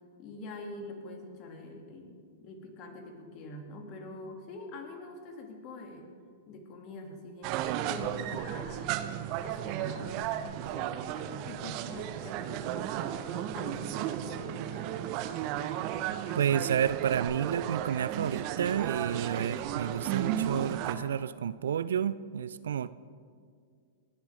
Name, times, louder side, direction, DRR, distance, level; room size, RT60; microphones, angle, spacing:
voice 1, 0.2-6.1 6.5-10.2 10.4-15.0, left 2 dB, 40° left, 3 dB, 2.8 m, -45 dB
sound 1, 7.4-21.0, right 11 dB, 40° right, 0.9 m, -34 dB
voice 2, 16.4-22.9, right 8 dB, 65° right, 16 dB, 0.4 m, -30 dB
29.5 x 11.5 x 3.8 m, 2.2 s
figure-of-eight pair, 100°, 0 cm